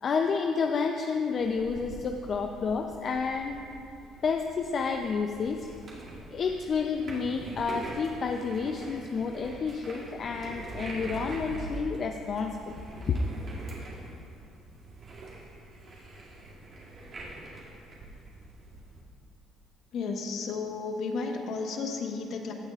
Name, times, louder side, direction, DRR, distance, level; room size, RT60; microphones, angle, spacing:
voice 1, 0.0-3.6 4.2-5.7 6.3-13.2, left 5 dB, 45° left, 4 dB, 0.5 m, -30 dB
sound 1, 1.4-19.0, right 2 dB, 45° right, 2.3 m, -44 dB
voice 2, 19.9-22.5, left 4 dB, 65° left, 2 dB, 1.1 m, -33 dB
16.5 x 8.9 x 2.4 m, 2.6 s
cardioid pair, 100°, 0 cm